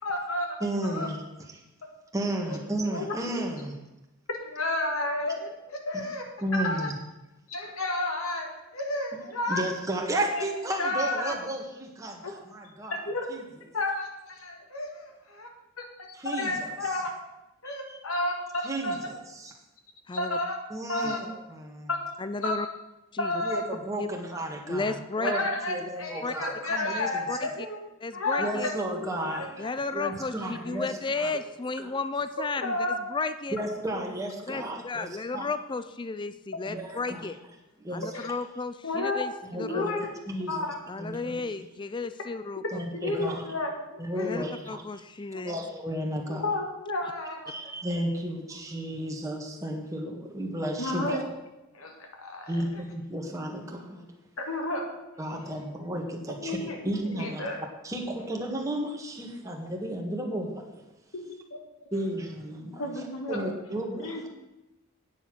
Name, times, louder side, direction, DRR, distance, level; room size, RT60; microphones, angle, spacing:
voice 1, 0.0-0.5 0.8-1.1 2.9-3.1 4.4-6.9 7.5-9.6 10.3-10.4 10.8-11.3 12.2-12.3 13.0-13.2 13.7-15.5 15.8-15.9 16.2-17.1 17.6-19.0 20.1-20.5 20.9-21.2 21.9-22.0 22.4-22.6 23.2-23.6 25.2-29.7 30.0-30.1 30.4-30.8 31.3-31.4 32.6-33.0 36.9-37.0 38.1-38.3 38.8-39.2 39.6-40.1 40.5-40.8 42.9-44.3 45.3-45.4 46.3-47.5 50.8-51.2 51.7-52.8 54.4-54.9 56.4-56.8 57.0-57.6 61.1-61.2 61.5-61.6 61.8-62.0 62.8-63.5 64.0-64.2, left 2 dB, 75° left, 2 dB, 1.8 m, -31 dB
voice 2, 0.6-1.2 2.1-3.8 6.4-6.9 9.5-13.0 13.3-13.4 16.1-16.7 17.6-17.8 18.6-19.5 20.7-21.9 23.4-25.4 25.7-27.2 28.4-29.6 29.9-31.3 31.8-31.9 32.6-32.7 33.5-35.1 35.3-35.4 36.7-37.3 37.8-38.0 39.5-41.3 42.7-43.5 44.0-44.8 45.4-46.4 47.5-51.2 52.5-54.1 55.2-57.5 57.8-60.8 61.9-62.9 63.3-64.2, right 1 dB, 15° right, 0 dB, 1.6 m, -33 dB
voice 3, 20.1-20.4 21.0-21.1 22.2-22.7 23.1-23.3 24.0-24.1 24.7-25.3 25.8-25.9 26.2-26.3 26.9-27.5 28.0-28.7 29.6-32.8 33.1-33.6 34.5-37.4 37.9-39.9 40.9-42.6 44.1-45.6, left 3 dB, 20° left, 12 dB, 0.4 m, -33 dB
9.5 x 8.1 x 6.1 m, 0.97 s
head